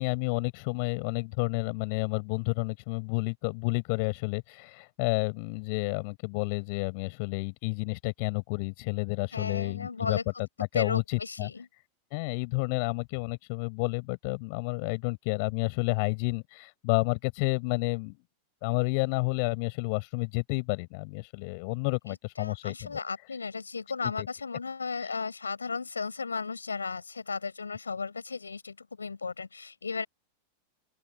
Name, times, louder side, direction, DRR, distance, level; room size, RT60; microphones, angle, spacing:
voice 1, 0.0-11.5 12.1-18.1 18.6-23.0 24.2-24.3 25.0-25.1, left 32 dB, 45° left, 7.9 m, -30 dB
voice 2, 9.3-10.2 10.7-11.7 22.4-30.1, left 4 dB, 75° left, 7.8 m, -35 dB
open air
figure-of-eight pair, 90°, 0 cm